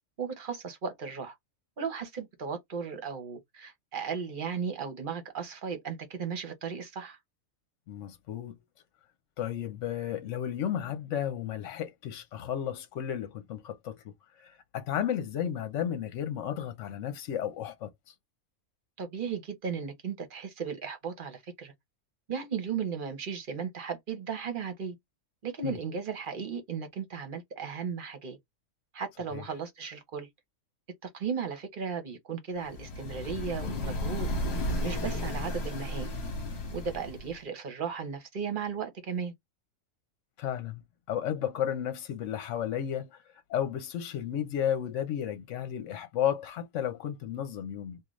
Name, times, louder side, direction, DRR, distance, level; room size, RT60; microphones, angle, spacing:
voice 1, 0.2-1.4 1.8-7.2 19.0-21.7 22.3-25.0 25.4-28.4 28.9-30.3 31.0-34.3 34.8-36.1 36.7-39.3, right 6 dB, 45° right, 0.9 m, -36 dB
voice 2, 7.9-8.6 9.4-14.1 14.4-17.9 25.6-25.8 29.3-29.4 34.9-35.1 40.4-40.8 41.1-43.2 43.5-48.0, left 10 dB, 75° left, 1.0 m, -33 dB
sound 1, 32.7-37.4, left 1 dB, 55° left, 1.2 m, -33 dB
3.8 x 2.4 x 3.1 m
omnidirectional pair, 1.3 m